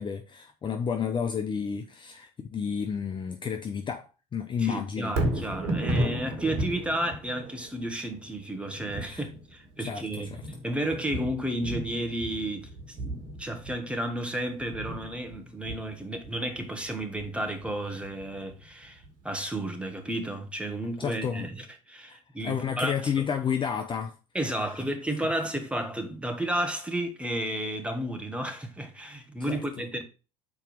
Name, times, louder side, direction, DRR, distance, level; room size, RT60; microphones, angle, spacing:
voice 1, 0.0-5.1 9.1-9.3 9.8-10.4 21.0-21.5 22.1-24.2 29.5-29.6, left 7 dB, 25° left, 0.7 m, -31 dB
voice 2, 4.6-10.3 10.6-23.3 24.3-30.0, right 1 dB, 5° right, 1.5 m, -32 dB
Thunder, 5.0-19.2 19.7-19.8, right 1 dB, 55° right, 1.7 m, -35 dB
6.1 x 4.4 x 5.0 m
figure-of-eight pair, 70°, 19 cm